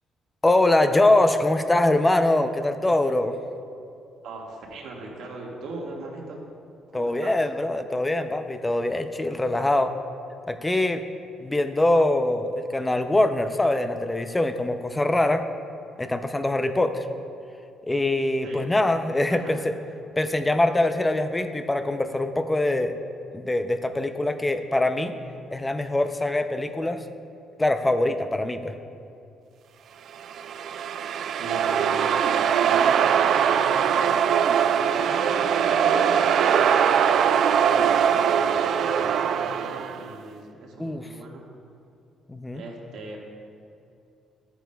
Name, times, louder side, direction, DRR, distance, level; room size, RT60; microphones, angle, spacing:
voice 1, 0.4-3.4 6.9-9.9 10.5-11.0 11.4-15.4 16.0-17.1 17.9-19.7 20.2-23.0 23.3-25.1 25.5-27.0 27.6-28.7 40.8-41.1 42.3-42.6, left 1 dB, 15° left, 8 dB, 0.4 m, -23 dB
voice 2, 4.2-6.4 6.9-7.3 18.4-18.7 19.3-19.6 31.4-34.4 34.7-41.5 42.5-43.2, right 2 dB, 80° right, -2 dB, 1.6 m, -39 dB
sound 1, 30.2-40.1, right 8 dB, 65° right, 0.3 m, -21 dB
12.5 x 9.1 x 2.3 m, 2.6 s
cardioid pair, 110°, 0 cm